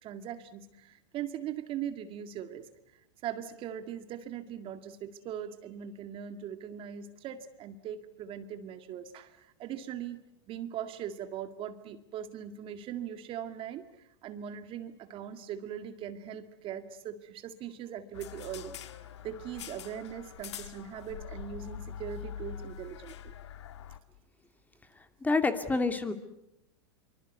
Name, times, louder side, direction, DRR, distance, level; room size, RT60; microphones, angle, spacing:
voice 1, 0.0-2.7 3.2-10.2 10.5-18.8 19.2-23.3, right 9 dB, 40° right, 9 dB, 2.1 m, -40 dB
sound 1, 18.1-24.0, left 9 dB, 75° left, 1.9 m, -44 dB
voice 2, 25.2-26.1, left 3 dB, 10° left, 8 dB, 2.5 m, -27 dB
26.0 x 25.0 x 8.1 m, 0.83 s
hypercardioid pair, 110°, 15 cm